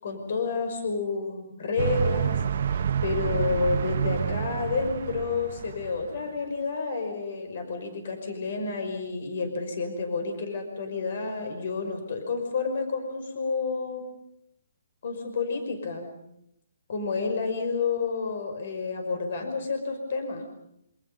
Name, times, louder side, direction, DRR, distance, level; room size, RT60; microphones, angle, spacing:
voice 1, 0.0-2.4 2.7-14.0 15.0-16.1 16.9-20.4, left 4 dB, 55° left, 6 dB, 5.6 m, -30 dB
sound 1, 1.8-6.4, right 8 dB, 60° right, 1.2 m, -28 dB
27.5 x 26.0 x 5.5 m, 0.77 s
hypercardioid pair, 160°, 0 cm